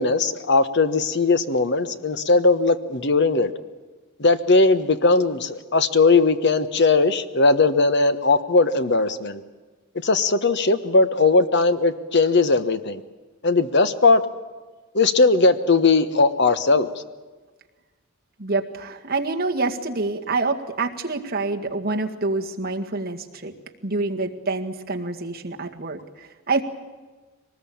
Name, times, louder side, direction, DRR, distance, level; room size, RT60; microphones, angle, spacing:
voice 1, 0.0-3.5 4.2-9.4 10.0-13.0 13.4-14.2 14.9-16.9, left 3 dB, 55° left, 11 dB, 1.3 m, -19 dB
voice 2, 18.4-23.5 23.8-26.6, right 3 dB, 45° right, 2 dB, 2.0 m, -27 dB
23.0 x 19.5 x 8.7 m, 1.3 s
head